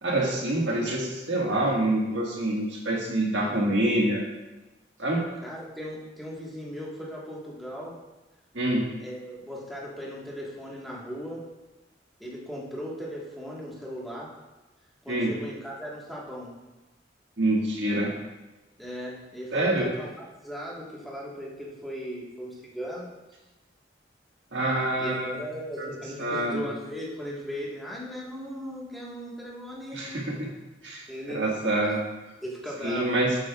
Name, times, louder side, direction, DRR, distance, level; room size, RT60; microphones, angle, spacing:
voice 1, 0.0-4.2 5.0-5.2 8.5-8.9 15.1-15.3 17.4-18.1 19.5-19.9 24.5-25.4 25.8-25.9 26.2-26.6 29.9-30.5 30.8-32.0 32.8-33.4, right 1 dB, 75° right, -2 dB, 1.7 m, -26 dB
voice 2, 5.4-8.0 9.0-11.4 12.2-14.3 15.0-16.5 18.8-23.1 25.0-30.2 31.1-31.4 32.4-33.1, equal, ahead, -5 dB, 1.5 m, -37 dB
9.8 x 7.8 x 2.4 m, 1.1 s
head